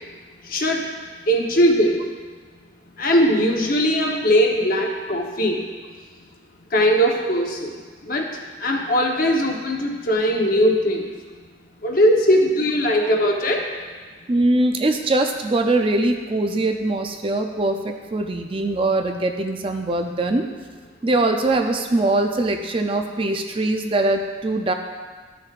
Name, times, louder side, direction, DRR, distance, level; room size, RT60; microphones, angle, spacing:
voice 1, 0.4-0.9 1.3-2.1 3.0-5.6 6.7-7.7 8.0-8.3 8.6-11.1 11.8-13.6, equal, 50° left, 1 dB, 1.0 m, -19 dB
voice 2, 14.3-20.4 21.0-24.7, right 2 dB, 30° right, 5 dB, 0.4 m, -22 dB
13.0 x 6.8 x 2.5 m, 1.4 s
head